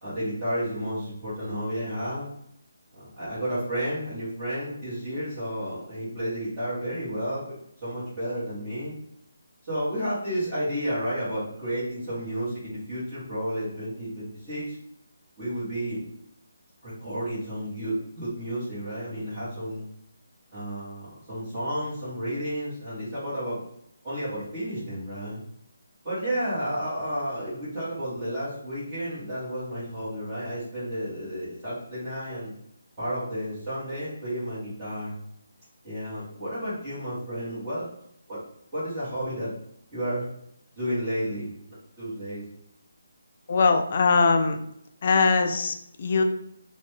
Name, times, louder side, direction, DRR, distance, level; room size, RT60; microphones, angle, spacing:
voice 1, 0.0-2.3 2.9-8.9 9.6-14.8 15.4-16.0 16.8-19.9 20.5-23.6 24.0-25.4 26.0-32.5 33.0-35.1 35.8-37.9 38.3-38.4 38.7-39.5 39.9-40.3 40.7-42.4, equal, 15° right, -12 dB, 1.1 m, -32 dB
voice 2, 43.5-44.6 45.0-46.2, left 4 dB, 35° left, 6 dB, 0.3 m, -21 dB
2.7 x 2.1 x 3.1 m, 0.74 s
hypercardioid pair, 175°, 0 cm